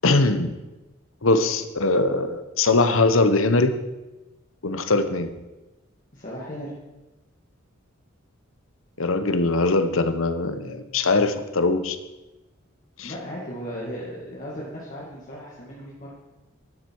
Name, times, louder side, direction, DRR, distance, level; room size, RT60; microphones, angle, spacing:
voice 1, 0.0-0.6 1.2-3.8 4.6-5.3 9.0-12.0 13.0-13.1, left 3 dB, 75° left, 9 dB, 1.1 m, -21 dB
voice 2, 6.1-6.7 13.0-16.1, equal, 40° left, -6 dB, 2.2 m, -36 dB
12.0 x 11.5 x 4.8 m, 1.1 s
head